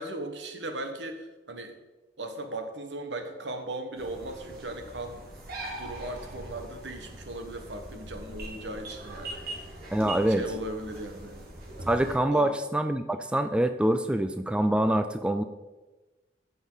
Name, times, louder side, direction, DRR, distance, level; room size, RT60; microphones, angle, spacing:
voice 1, 0.0-1.7 2.2-5.3 5.7-9.8 10.3-11.5 12.3-12.6 14.0-14.3, right 2 dB, 75° right, 5 dB, 1.3 m, -38 dB
sound 1, 4.0-12.2, right 1 dB, 55° right, 2.1 m, -41 dB
voice 2, 9.9-10.4 11.9-15.4, right 1 dB, 5° right, 8 dB, 0.3 m, -25 dB
15.0 x 5.5 x 3.9 m, 1.2 s
head